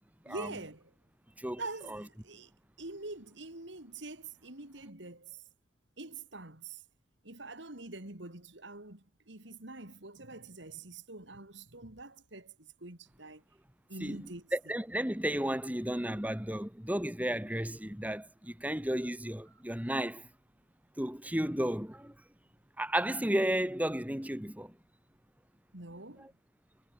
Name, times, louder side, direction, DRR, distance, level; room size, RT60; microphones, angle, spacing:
voice 1, 0.3-0.9 1.6-2.5 2.8-5.4 6.0-6.8 7.2-13.4 13.9-14.5 25.7-26.3, right 2 dB, 65° right, 3.4 m, -45 dB
voice 2, 14.5-20.3 21.0-22.1 22.8-24.7 26.2-26.3, right 1 dB, 10° right, 1.7 m, -33 dB
head